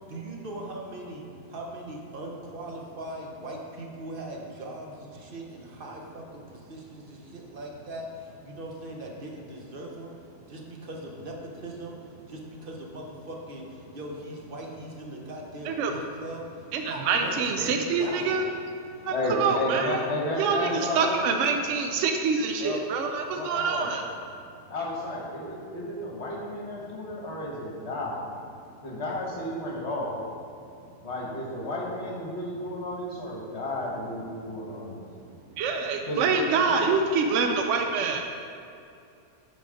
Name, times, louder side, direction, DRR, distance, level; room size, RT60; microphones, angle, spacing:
voice 1, 0.1-10.1 10.5-12.0 12.3-16.5 16.9-18.4, right 1 dB, 40° right, 0 dB, 1.0 m, -40 dB
voice 2, 16.7-18.4 19.0-20.0 20.4-24.0 35.6-38.2, right 5 dB, 70° right, 4 dB, 0.7 m, -26 dB
voice 3, 19.1-21.2 22.6-22.8 23.3-23.9 24.7-28.2 28.8-30.1 31.0-35.0 36.1-36.4 36.7-36.8, left 1 dB, 45° left, -2 dB, 1.4 m, -32 dB
8.9 x 4.2 x 5.0 m, 2.6 s
omnidirectional pair, 1.7 m